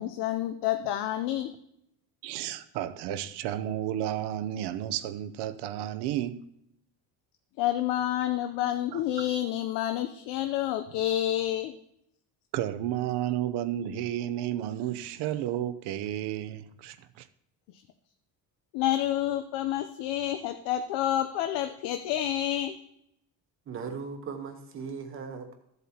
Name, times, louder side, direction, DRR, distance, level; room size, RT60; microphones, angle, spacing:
voice 1, 0.0-1.5 7.6-11.8 18.7-22.7, left 12 dB, 85° left, 0.7 m, -29 dB
voice 2, 2.2-6.5 8.9-9.0 12.5-17.3, right 12 dB, 80° right, 0.7 m, -32 dB
voice 3, 23.7-25.6, right 5 dB, 30° right, 1.0 m, -38 dB
13.5 x 8.0 x 2.8 m
cardioid pair, 180°, 40 cm